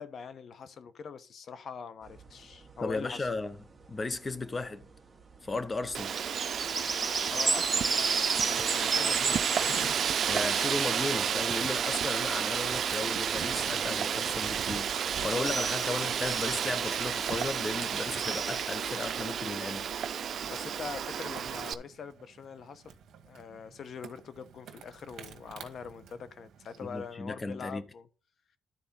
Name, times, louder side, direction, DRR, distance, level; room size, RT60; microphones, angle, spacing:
voice 1, 0.0-3.3 7.2-10.1 15.8-16.0 20.5-22.9 23.2-28.1, left 6 dB, 60° left, 0.9 m, -43 dB
sound 1, 2.1-19.0, right 4 dB, 30° right, 1.7 m, -36 dB
voice 2, 2.8-3.6 3.9-4.9 5.4-6.2 10.3-19.9 26.8-27.8, left 3 dB, 25° left, 1.0 m, -35 dB
Wind, 5.9-21.7, right 8 dB, 60° right, 0.7 m, -31 dB
Insect, 20.4-27.2, right 8 dB, 75° right, 1.3 m, -52 dB
12.0 x 4.2 x 5.6 m
cardioid pair, 100°, 0 cm